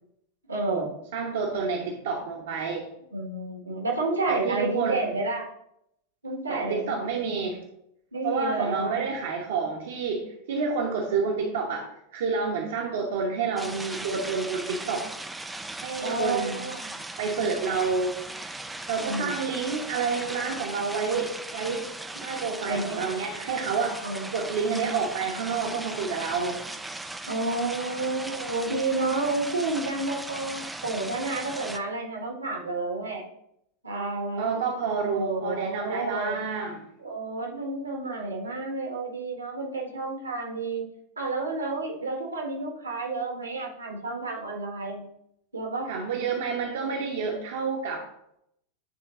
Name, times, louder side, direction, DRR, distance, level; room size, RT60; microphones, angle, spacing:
voice 1, 0.5-0.9 3.1-5.5 6.2-7.3 8.1-9.1 16.0-16.9 17.6-17.7 19.0-19.4 22.6-23.2 24.0-24.3 27.3-33.2 33.8-34.6 35.1-36.4 37.0-40.9 41.2-45.0 45.5-45.9, right 3 dB, 75° right, 1 dB, 1.5 m, -30 dB
voice 2, 1.1-2.9 4.3-5.0 6.5-7.6 8.2-11.9 12.1-15.1 15.8-16.6 17.2-18.1 18.9-21.9 22.2-24.0 24.3-26.6 34.4-36.8 45.9-48.0, right 5 dB, 55° right, 0 dB, 1.1 m, -29 dB
sound 1, 13.6-31.8, right 2 dB, 5° right, 0.5 m, -38 dB
9.6 x 3.8 x 3.8 m, 0.77 s
figure-of-eight pair, 90°, 0 cm